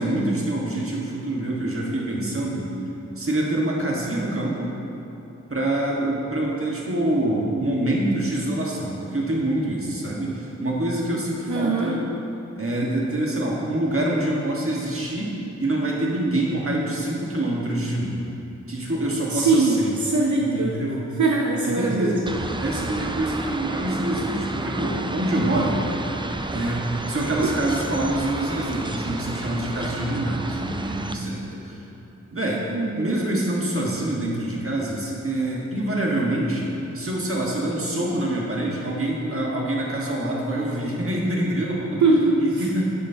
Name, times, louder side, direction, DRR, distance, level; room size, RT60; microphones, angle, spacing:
voice 1, 0.0-2.7 3.2-4.7 5.5-12.1 12.6-15.3 15.6-18.2 18.7-19.9 20.3-21.0 21.6-22.2 22.6-25.8 26.5-31.9 32.3-32.6 33.0-42.0 42.4-42.8, right 1 dB, 50° right, -3 dB, 1.4 m, -26 dB
voice 2, 11.5-11.9 19.3-20.8 21.2-22.2 32.7-33.1 42.0-42.8, right 3 dB, 80° right, -1 dB, 0.6 m, -21 dB
sound 1, 22.3-31.1, right 2 dB, 15° right, 0.4 m, -31 dB
10.0 x 7.6 x 2.8 m, 2.9 s
wide cardioid pair, 60°, 29 cm